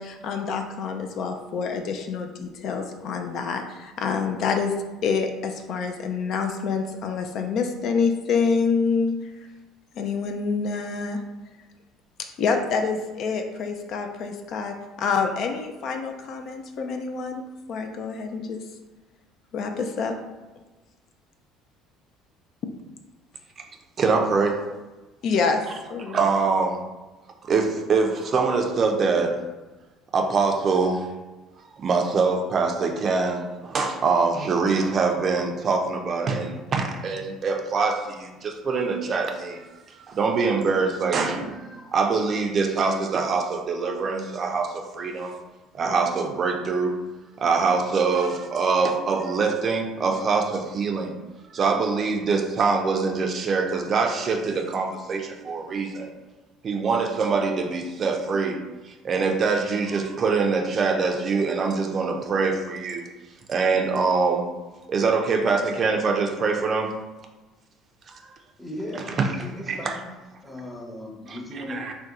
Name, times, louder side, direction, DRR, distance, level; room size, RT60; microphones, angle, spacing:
voice 1, 0.0-4.7 5.0-9.3 10.0-11.2 12.4-17.4 17.7-18.6 19.5-20.1 25.2-26.3, left 5 dB, 60° left, 5 dB, 0.3 m, -27 dB
voice 2, 24.0-24.6 26.1-26.8 27.5-29.4 30.1-31.1 31.8-39.6 40.1-45.3 45.7-47.0 47.4-51.1 51.5-56.1 56.6-58.6 59.0-63.1 63.5-64.5 64.9-66.9 68.1-68.2 69.1-69.3 69.7-70.0 71.3-71.9, right 4 dB, 45° right, 3 dB, 0.4 m, -24 dB
voice 3, 68.6-70.2 70.4-71.9, left 1 dB, 10° left, 0 dB, 0.7 m, -37 dB
2.7 x 2.2 x 3.6 m, 1.2 s
hypercardioid pair, 65°, 0 cm